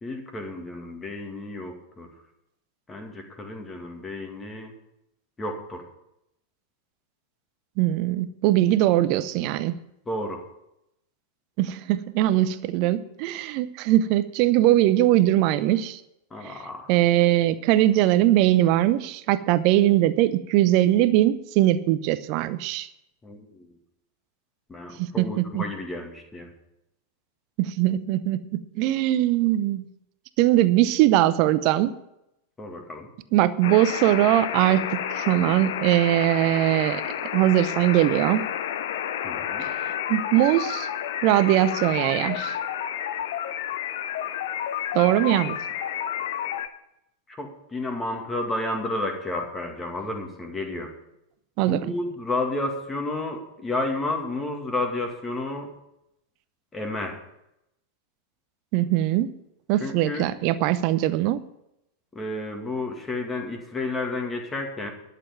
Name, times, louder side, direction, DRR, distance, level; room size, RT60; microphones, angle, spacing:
voice 1, 0.0-2.1 2.9-4.7 5.4-5.9 10.1-10.4 16.3-16.9 23.2-23.7 24.7-26.5 32.6-33.1 39.2-39.7 47.3-50.9 51.7-55.7 56.7-57.3 59.8-60.3 62.1-64.9, left 2 dB, 15° left, 3 dB, 2.2 m, -31 dB
voice 2, 7.8-9.7 11.6-16.0 16.4-16.5 16.9-22.9 25.0-25.6 27.6-28.5 28.8-29.9 30.4-31.9 33.3-37.0 37.3-38.4 39.6-39.7 40.1-40.9 41.2-42.5 44.9-45.5 51.6-51.9 58.7-59.3 59.7-61.4, right 14 dB, 45° right, 14 dB, 0.7 m, -21 dB
sound 1, 33.6-46.7, left 10 dB, 55° left, 0.7 m, -30 dB
11.5 x 6.8 x 7.3 m, 0.83 s
figure-of-eight pair, 90°, 0 cm